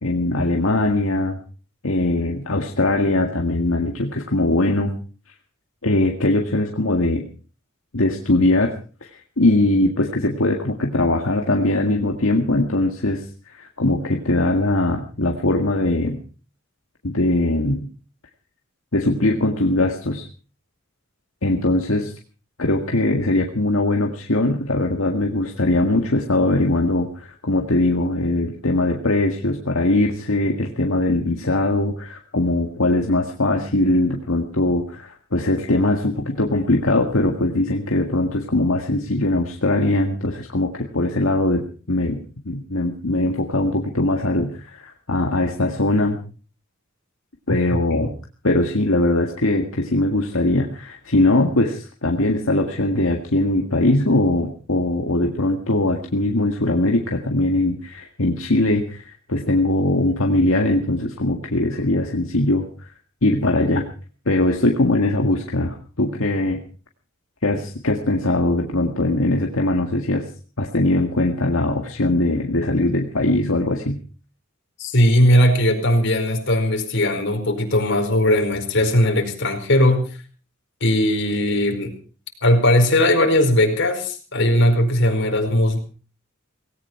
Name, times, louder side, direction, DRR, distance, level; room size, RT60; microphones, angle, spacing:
voice 1, 0.0-1.4 1.8-5.0 5.8-7.2 7.9-8.7 9.0-16.2 17.0-17.9 18.9-20.2 21.4-22.1 22.6-46.2 47.5-48.2 48.4-62.9 63.2-63.9 64.3-66.6 67.4-70.3 70.6-74.0, left 2 dB, 80° left, 2 dB, 1.9 m, -21 dB
voice 2, 74.8-80.0 80.8-81.9 82.4-85.8, left 1 dB, 65° left, 4 dB, 4.8 m, -18 dB
18.5 x 17.0 x 4.5 m, 0.39 s
head